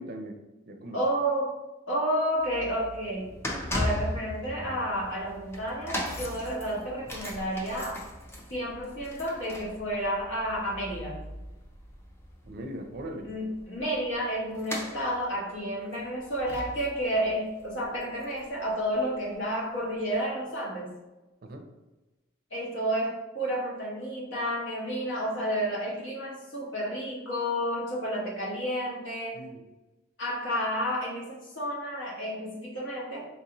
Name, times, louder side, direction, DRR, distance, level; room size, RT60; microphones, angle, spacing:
voice 1, 0.0-1.0 8.4-8.5 12.4-13.3 21.4-21.6 29.3-29.7, equal, 55° right, 5 dB, 0.5 m, -40 dB
voice 2, 0.9-1.5 1.9-3.3 3.7-8.0 8.5-11.2 13.2-20.9 22.5-29.4 30.2-33.3, equal, 70° left, -4 dB, 1.2 m, -31 dB
sound 1, 2.4-18.7 19.0-19.2 20.0-20.1, left 1 dB, 15° left, 0.5 m, -39 dB
3.9 x 2.6 x 2.9 m, 1.1 s
head